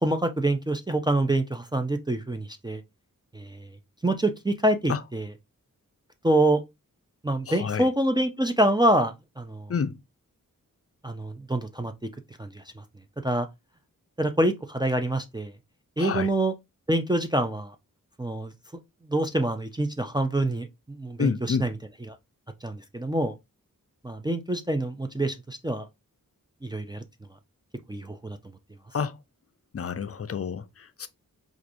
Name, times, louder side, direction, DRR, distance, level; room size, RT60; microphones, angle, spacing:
voice 1, 0.0-2.8 3.3-3.7 4.0-5.3 6.2-6.6 7.2-9.7 11.0-11.9 12.4-12.8 13.2-13.5 14.2-15.5 16.0-16.5 16.9-17.7 18.2-18.5 19.0-21.7 22.1-22.2 22.6-23.3 24.0-25.9 26.6-27.0 27.9-28.4, right 1 dB, 15° right, 0.4 m, -26 dB
voice 2, 7.5-7.9 9.7-10.0 16.0-16.3 21.2-21.7 28.9-29.2 29.7-31.1, left 6 dB, 45° left, 0.5 m, -29 dB
4.6 x 2.5 x 2.6 m
wide cardioid pair, 55°, 34 cm